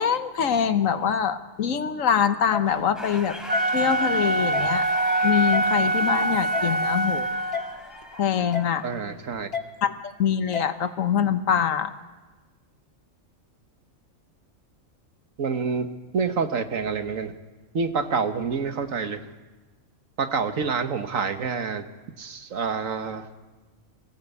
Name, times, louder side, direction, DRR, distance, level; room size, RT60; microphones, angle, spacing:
voice 1, 0.0-3.4 3.7-4.9 5.2-7.3 8.1-8.8 9.8-9.9 10.2-11.9, left 8 dB, 80° left, 10 dB, 1.4 m, -24 dB
sound 1, 2.5-2.6 3.5-3.6 4.5-4.7 5.5-5.6 6.5-6.7 7.5-7.6 8.5-8.7 9.5-9.6 10.5-10.7, left 7 dB, 50° left, 2.0 m, -30 dB
sound 2, 3.0-9.1, equal, ahead, 3.0 m, -39 dB
Wind instrument woodwind instrument, 3.4-7.8, right 2 dB, 35° right, 0.8 m, -24 dB
voice 2, 8.8-9.5 15.4-15.9 16.1-17.3 17.7-19.2 20.2-21.8 22.2-23.3, right 5 dB, 80° right, 8 dB, 1.7 m, -27 dB
23.5 x 16.5 x 8.3 m, 1.2 s
omnidirectional pair, 1.4 m